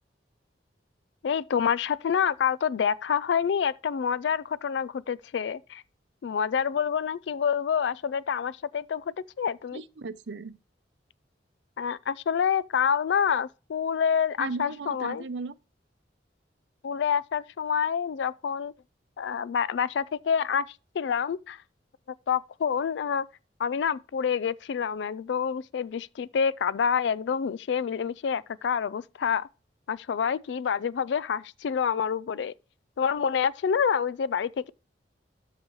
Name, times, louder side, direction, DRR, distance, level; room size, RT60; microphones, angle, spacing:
voice 1, 1.2-5.8 6.2-9.8 11.8-15.2 16.8-18.7 19.2-20.6 20.9-21.6 22.3-23.3 23.6-29.5 29.9-32.5 33.0-34.7, left 7 dB, 75° left, 0.4 m, -27 dB
voice 2, 9.7-10.6 14.4-15.5, right 4 dB, 75° right, 0.7 m, -36 dB
12.5 x 5.0 x 3.1 m
head